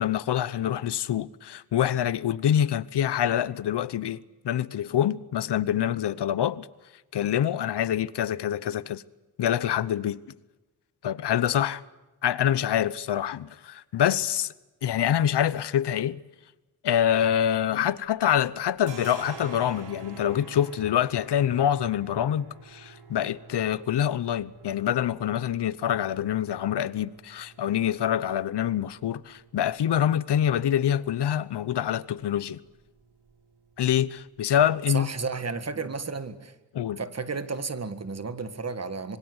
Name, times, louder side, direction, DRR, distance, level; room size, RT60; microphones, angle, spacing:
voice 1, 0.0-6.7 7.1-9.0 9.4-10.2 11.0-11.8 12.2-14.5 14.8-16.2 16.8-32.6 33.8-35.1 36.7-37.0, left 10 dB, 85° left, 0.9 m, -26 dB
sound 1, 17.3-18.2 18.5-36.0, right 5 dB, 80° right, 4.0 m, -49 dB
voice 2, 34.9-36.6 37.0-39.2, right 4 dB, 40° right, 1.8 m, -32 dB
26.5 x 22.5 x 8.0 m
wide cardioid pair, 125°, 40 cm